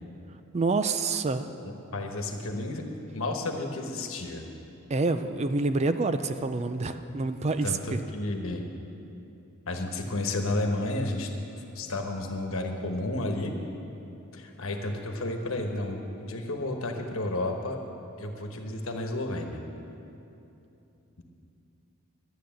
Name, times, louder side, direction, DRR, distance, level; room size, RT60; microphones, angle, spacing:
voice 1, 0.5-1.5 4.9-8.0, right 3 dB, 30° right, 10 dB, 0.4 m, -27 dB
voice 2, 1.6-4.4 7.6-8.6 9.7-11.3 11.7-13.5 14.3-17.8 18.2-19.6, left 2 dB, 70° left, 3 dB, 1.3 m, -32 dB
11.5 x 9.5 x 7.6 m, 2.8 s
head